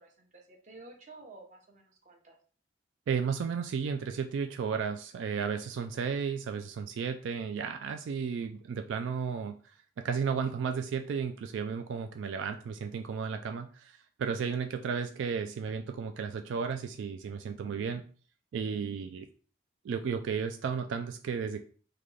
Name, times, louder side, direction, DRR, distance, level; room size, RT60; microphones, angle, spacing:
voice 1, 0.0-2.3, right 2 dB, 40° right, 1 dB, 0.8 m, -52 dB
voice 2, 3.1-9.6 10.0-18.0 18.5-19.3 19.8-21.6, right 6 dB, 80° right, 6 dB, 0.3 m, -33 dB
3.7 x 2.2 x 3.2 m, 0.42 s
head